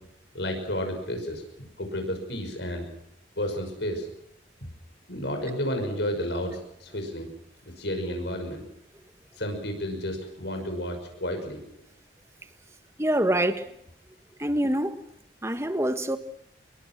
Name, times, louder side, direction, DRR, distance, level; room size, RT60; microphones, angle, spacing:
voice 1, 0.3-1.4 1.8-2.9 3.4-4.1 5.1-7.3 7.6-8.6 9.4-11.6, equal, 70° left, 5.8 m, -31 dB
voice 2, 13.0-13.7 14.4-15.0 15.4-16.2, right 1 dB, 15° right, 1.5 m, -25 dB
26.0 x 22.5 x 6.1 m
head